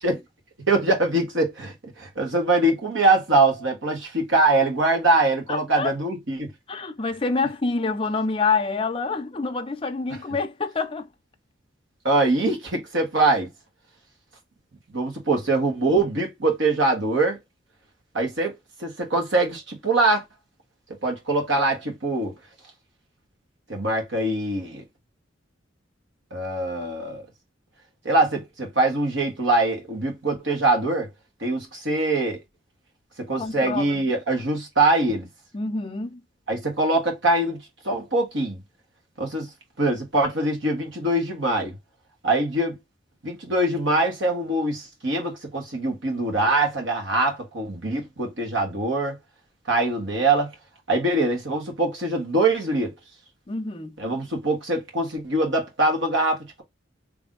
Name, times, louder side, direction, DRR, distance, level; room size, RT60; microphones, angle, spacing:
voice 1, 0.7-6.5 12.0-13.5 14.9-17.4 18.1-20.2 21.0-22.3 23.7-24.8 26.3-27.3 28.0-31.1 31.4-32.4 33.2-35.3 36.5-37.6 37.8-38.6 39.2-39.5 39.8-41.8 42.2-42.8 43.2-49.2 49.7-50.5 50.9-52.9 54.0-56.6, right 2 dB, 70° right, 1.6 m, -23 dB
voice 2, 5.5-5.9 6.7-11.1 33.4-34.1 35.5-36.2 53.5-53.9, left 4 dB, 25° left, 0.5 m, -27 dB
3.4 x 2.6 x 3.8 m
head